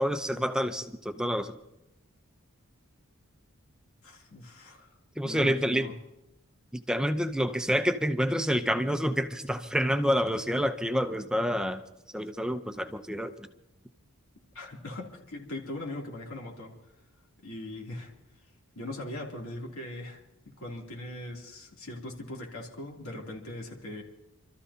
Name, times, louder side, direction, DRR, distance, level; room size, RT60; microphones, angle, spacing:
voice 1, 0.0-1.5 5.2-5.9 6.7-11.8 12.1-13.3, equal, 5° right, 9 dB, 0.6 m, -28 dB
voice 2, 4.0-4.9 5.2-6.0 14.5-16.7 17.4-18.1 18.7-24.0, left 1 dB, 75° left, -1 dB, 3.0 m, -40 dB
29.5 x 13.5 x 2.8 m, 0.93 s
head